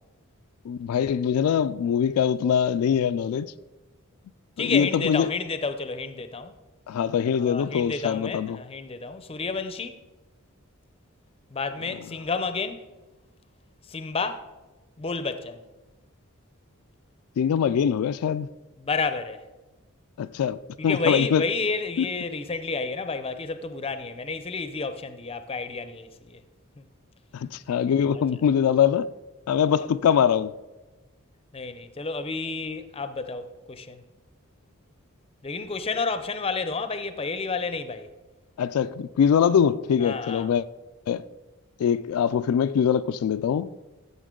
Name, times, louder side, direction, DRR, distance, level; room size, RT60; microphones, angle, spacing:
voice 1, 0.6-3.5 4.6-5.3 6.9-8.6 17.4-18.5 20.2-21.5 22.0-22.1 27.3-29.1 29.5-30.5 38.6-40.6 41.1-41.3 41.8-43.7, left 8 dB, 85° left, 0.3 m, -23 dB
voice 2, 4.6-6.5 7.4-10.0 11.5-12.8 13.9-14.5 15.0-15.6 18.8-19.4 20.9-26.4 26.8-26.9 29.9-30.0 31.5-34.0 35.4-38.1 40.0-40.5, left 4 dB, 25° left, 0.5 m, -30 dB
13.5 x 7.0 x 3.7 m
head